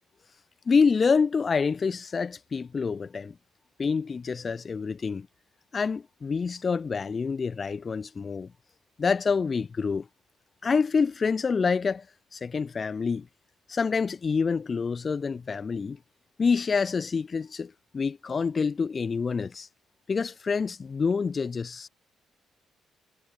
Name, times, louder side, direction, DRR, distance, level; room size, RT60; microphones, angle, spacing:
voice 1, 0.7-3.3 3.8-5.3 5.7-8.5 9.0-10.1 10.6-12.1 12.3-13.3 13.7-16.0 16.4-19.7 20.1-21.9, left 5 dB, 35° left, 0.6 m, -27 dB
cardioid pair, 90°, 0 cm